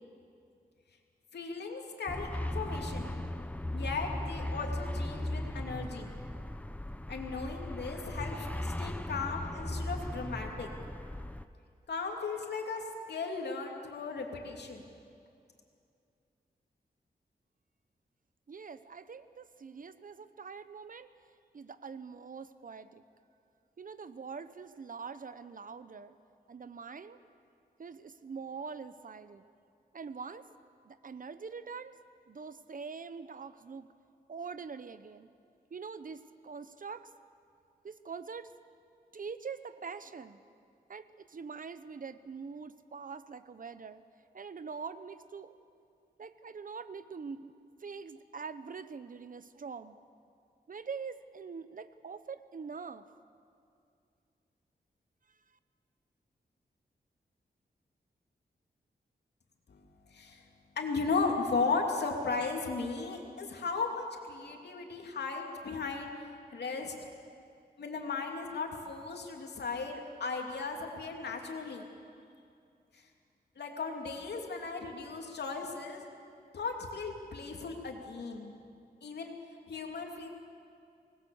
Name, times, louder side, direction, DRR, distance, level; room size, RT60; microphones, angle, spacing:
voice 1, 1.3-3.2 3.7-6.1 7.1-10.7 11.9-14.9 59.7-59.8 60.1-60.4 60.8-66.1 66.5-66.9 67.8-71.9 72.9-73.0 73.6-76.0 76.5-78.5 79.0-79.3 79.7-80.3, left 4 dB, 85° left, 2 dB, 2.8 m, -36 dB
sound 1, 2.1-11.5, left 1 dB, 10° left, 0.7 m, -37 dB
voice 2, 18.5-21.1 21.5-23.0 23.8-26.2 26.5-27.2 27.8-29.4 29.9-30.5 30.8-31.9 32.3-33.9 34.3-35.3 35.7-37.1 37.8-38.5 39.1-40.4 40.9-44.0 44.3-45.5 46.2-47.5 47.8-50.0 50.7-53.0, right 5 dB, 55° right, 13 dB, 0.9 m, -44 dB
25.5 x 19.5 x 7.2 m, 2.5 s
wide cardioid pair, 95°, 17 cm